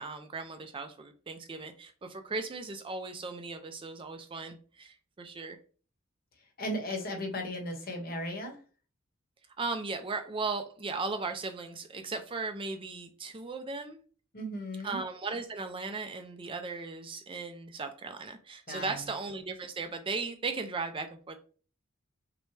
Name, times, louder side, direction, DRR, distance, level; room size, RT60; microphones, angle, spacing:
voice 1, 0.0-5.6 9.6-14.0 14.8-21.4, right 3 dB, 25° right, 7 dB, 0.4 m, -37 dB
voice 2, 6.6-8.6 14.3-15.0 18.7-19.0, equal, 45° left, 3 dB, 1.1 m, -36 dB
5.9 x 2.2 x 3.2 m, 0.39 s
head